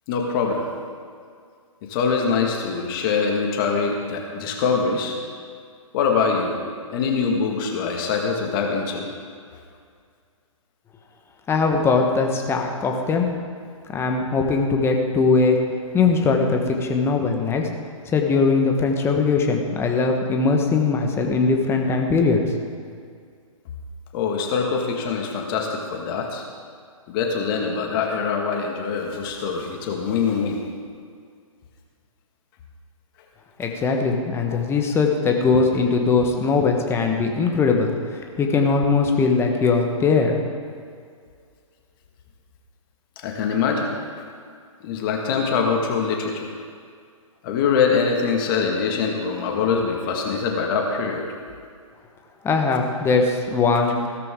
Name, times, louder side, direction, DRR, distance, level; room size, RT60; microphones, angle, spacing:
voice 1, 0.1-0.7 1.8-5.1 5.9-6.6 6.9-9.1 24.1-26.4 27.1-30.6 34.5-34.6 43.2-43.9 44.8-46.5 47.4-51.2, left 5 dB, 40° left, 1 dB, 2.0 m, -23 dB
voice 2, 11.5-13.3 13.9-15.6 15.9-17.7 18.1-22.4 33.6-40.4 52.4-54.0, left 4 dB, 15° left, 2 dB, 1.4 m, -20 dB
16.0 x 13.5 x 3.8 m, 2.1 s
hypercardioid pair, 135°, 18 cm